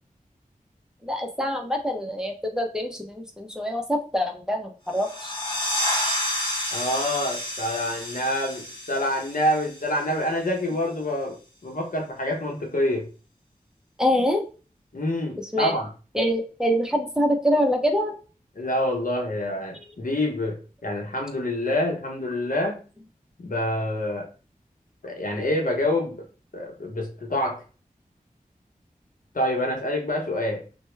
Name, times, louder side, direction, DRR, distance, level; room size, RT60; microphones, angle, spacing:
voice 1, 1.0-5.3 14.0-14.4 15.5-15.7 16.1-18.1, equal, 5° right, 1 dB, 0.8 m, -25 dB
sound 1, 4.9-10.3, left 1 dB, 35° left, 1.5 m, -30 dB
voice 2, 6.7-11.4 11.6-13.1 14.9-15.9 18.6-22.8 23.4-24.3 25.0-26.3 26.5-27.6 29.3-30.6, left 1 dB, 65° left, 2 dB, 0.9 m, -27 dB
2.9 x 2.2 x 3.2 m, 0.35 s
cardioid pair, 40°, 15 cm